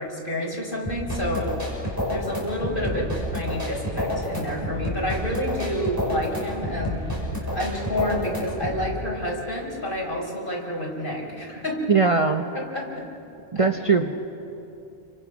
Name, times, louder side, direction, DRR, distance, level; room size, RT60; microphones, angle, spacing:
voice 1, 0.0-1.5 1.8-11.8 12.5-13.1 13.5-13.7, equal, 50° left, -1 dB, 4.7 m, -29 dB
sound 1, 0.9-8.9, left 1 dB, 15° right, 6.2 m, -29 dB
voice 2, 11.9-12.5 13.5-14.1, right 4 dB, 35° right, 5 dB, 0.9 m, -20 dB
29.0 x 24.0 x 6.1 m, 2.8 s
omnidirectional pair, 1.1 m